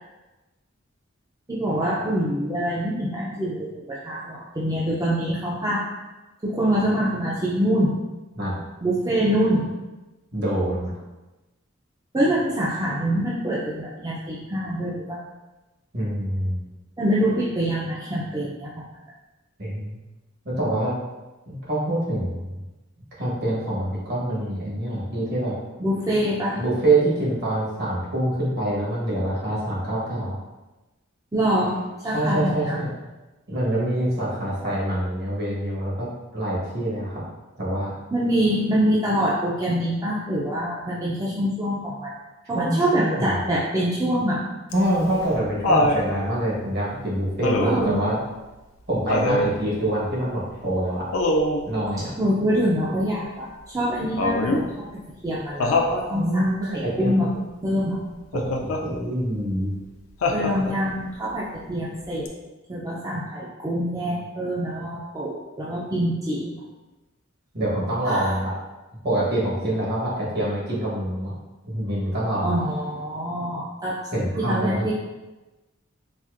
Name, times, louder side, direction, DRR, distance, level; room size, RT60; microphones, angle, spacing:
voice 1, 1.5-5.8 6.4-8.0 8.8-9.7 12.1-15.2 17.0-18.8 25.8-26.6 31.3-32.8 38.1-42.1 42.5-44.4 47.6-48.0 52.2-56.4 56.7-57.3 57.6-58.0 60.3-62.3 62.7-66.6 68.0-68.3 72.4-74.0 74.4-74.9, equal, 15° right, -6 dB, 0.4 m, -25 dB
voice 2, 10.3-10.9 15.9-16.7 19.6-20.0 20.4-20.9 21.5-22.5 23.1-25.5 26.6-30.4 32.1-32.9 33.5-37.2 37.6-37.9 42.5-43.4 44.7-48.2 48.9-51.0 51.7-52.1 56.1-57.2 58.3-59.7 67.5-68.5 69.0-71.3 71.6-72.5 74.1-74.9, right 1 dB, 50° right, -6 dB, 1.2 m, -25 dB
Laughter, 44.7-46.0 47.4-47.9 49.1-49.5 51.1-51.7 54.2-54.7 55.6-56.0 58.3-58.8 60.2-60.9 62.3-62.4, left 1 dB, 85° left, 0.4 m, -22 dB
4.1 x 2.5 x 2.4 m, 1.1 s
head